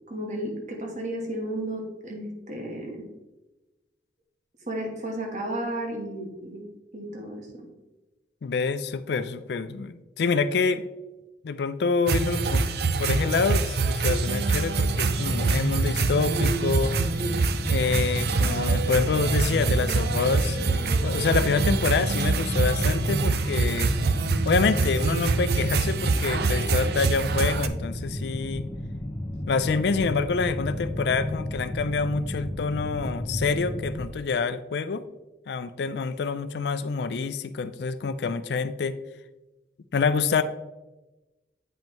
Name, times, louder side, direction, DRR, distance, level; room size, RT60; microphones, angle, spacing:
voice 1, 0.1-3.1 4.7-6.6 6.9-7.7, right 1 dB, 40° right, 1 dB, 1.4 m, -33 dB
voice 2, 8.4-10.9 11.4-12.7 13.0-17.3 17.7-23.9 24.5-28.7 29.5-35.1 35.5-39.0 39.9-40.4, left 4 dB, 65° left, 12 dB, 0.4 m, -27 dB
sound 1, 12.1-27.7, right 3 dB, 60° right, 0.4 m, -25 dB
sound 2, 15.1-34.0, left 1 dB, 20° left, 0.6 m, -33 dB
8.7 x 5.3 x 3.0 m, 1.1 s
head